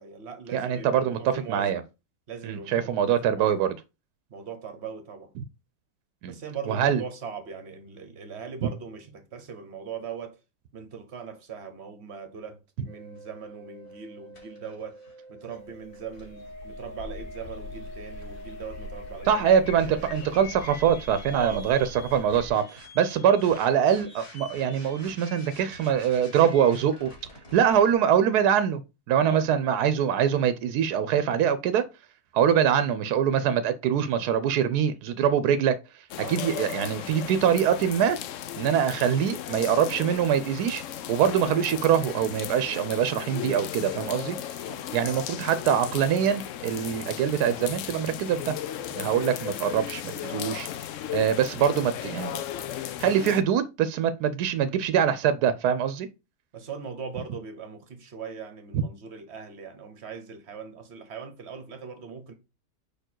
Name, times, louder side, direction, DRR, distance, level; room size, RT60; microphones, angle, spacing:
voice 1, 0.0-1.8 2.3-3.7 4.3-5.3 6.3-10.4 10.7-15.0 15.3-20.3 21.3-21.7 29.3-29.5 36.1-36.4 44.7-44.9 56.5-62.3, right 6 dB, 45° right, 1.3 m, -40 dB
voice 2, 0.5-1.8 2.4-3.7 5.4-5.5 6.2-6.3 6.7-7.0 19.3-27.1 27.5-28.8 29.1-31.8 32.3-38.2 38.6-40.8 41.1-44.4 44.9-48.5 48.9-50.7 51.1-52.3 53.0-56.1, right 8 dB, 85° right, 1.1 m, -24 dB
sound 1, 12.9-27.9, equal, 45° left, 2.6 m, -46 dB
sound 2, 15.7-22.5, left 3 dB, 85° left, 1.5 m, -42 dB
sound 3, 36.1-53.4, left 10 dB, 65° left, 0.8 m, -36 dB
5.0 x 4.5 x 4.4 m
omnidirectional pair, 1.6 m